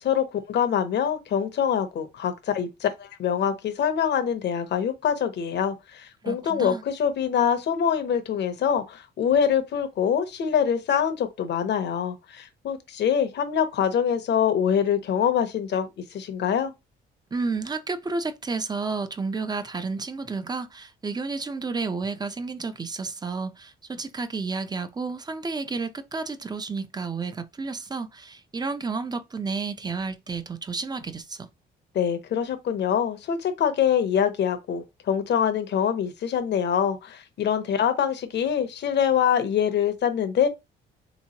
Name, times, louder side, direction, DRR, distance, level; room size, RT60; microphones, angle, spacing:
voice 1, 0.0-16.7 31.9-40.5, left 8 dB, 60° left, 0.8 m, -24 dB
voice 2, 6.2-6.8 17.3-31.5, right 4 dB, 20° right, 0.5 m, -31 dB
3.4 x 3.0 x 2.8 m
cardioid pair, 90°, 20 cm